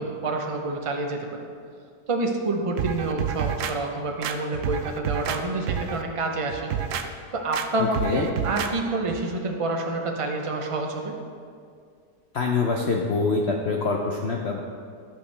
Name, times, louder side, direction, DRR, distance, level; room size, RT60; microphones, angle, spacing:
voice 1, 0.0-1.5 2.1-6.7 7.3-11.1, right 2 dB, 55° right, 2 dB, 0.3 m, -28 dB
sound 1, 2.8-3.7 4.2-5.4 5.7-6.0 6.5-7.1 7.5-7.7 7.9-8.7 9.1-9.2, right 8 dB, 80° right, 0.7 m, -29 dB
voice 2, 12.3-14.6, left 4 dB, 65° left, 1 dB, 0.6 m, -25 dB
11.5 x 8.3 x 3.3 m, 2.2 s
omnidirectional pair, 1.9 m